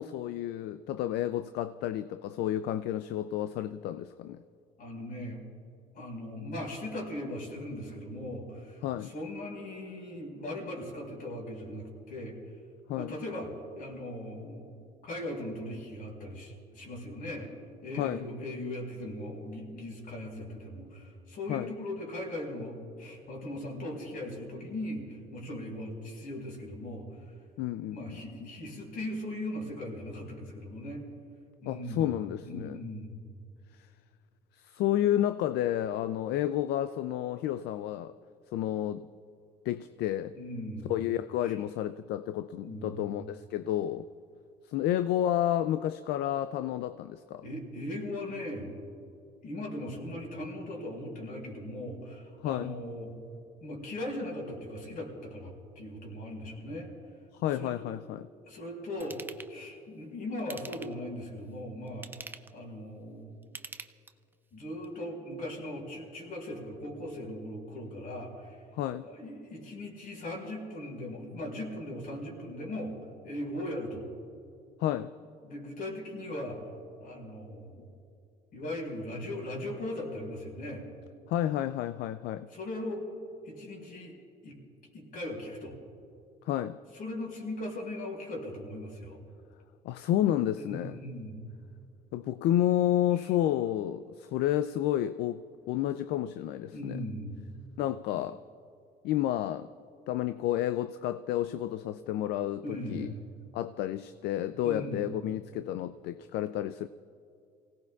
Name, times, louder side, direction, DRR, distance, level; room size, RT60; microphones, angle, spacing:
voice 1, 0.0-4.4 8.8-9.1 12.9-13.1 18.0-18.2 21.5-21.7 27.6-28.5 31.7-32.8 33.7-33.9 34.5-38.1 38.5-39.1 39.7-40.3 40.9-44.1 44.7-47.4 52.4-52.7 57.3-58.3 68.7-69.1 74.8-75.1 81.3-82.5 86.5-86.8 89.8-91.0 92.1-97.0 97.8-98.4 99.0-99.7 100.1-103.1 103.5-106.9, left 12 dB, 80° left, 0.4 m, -31 dB
voice 2, 4.8-5.4 5.9-12.3 12.9-13.5 13.7-14.7 15.0-17.5 17.8-27.1 27.9-31.0 31.6-32.1 32.4-33.3 40.3-40.9 41.4-41.6 42.6-43.2 47.4-48.7 49.4-53.1 53.6-56.9 57.5-57.9 58.4-62.1 62.5-63.4 64.5-68.6 69.0-73.0 73.2-74.1 75.4-76.6 77.0-77.8 78.5-80.8 82.5-83.0 83.4-84.1 84.4-84.6 84.9-85.7 86.9-89.2 90.6-91.5 93.2-93.3 96.7-97.5 102.6-103.1 104.6-105.1, left 1 dB, 60° left, 4.9 m, -39 dB
Ratchet pawl / Tools, 59.0-59.5 60.4-61.1 61.9-62.6 63.4-64.3 64.8-64.9, right 3 dB, 10° right, 0.5 m, -45 dB
28.0 x 17.5 x 2.4 m
cardioid pair, 110°, 17 cm